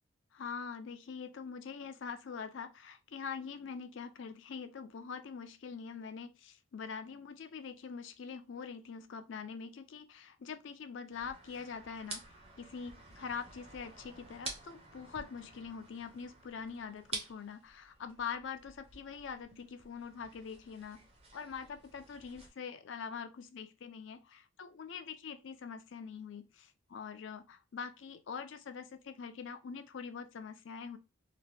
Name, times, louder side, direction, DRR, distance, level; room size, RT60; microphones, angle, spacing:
voice 1, 0.3-21.0 21.3-31.0, left 6 dB, 65° left, 0.4 m, -44 dB
sound 1, 11.1-22.5, right 3 dB, 30° right, 0.7 m, -49 dB
2.8 x 2.2 x 3.3 m
head